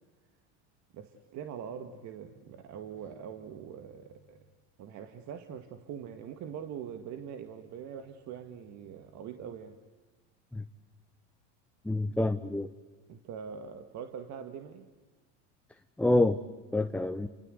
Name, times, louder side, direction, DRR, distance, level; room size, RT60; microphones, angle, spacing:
voice 1, 0.9-4.5 4.8-9.8 13.1-14.9, right 8 dB, 50° right, 2.1 m, -43 dB
voice 2, 11.8-12.7 16.0-16.4 16.7-17.3, left 2 dB, 5° left, 0.9 m, -27 dB
30.0 x 24.5 x 8.0 m
supercardioid pair, 110°, 35 cm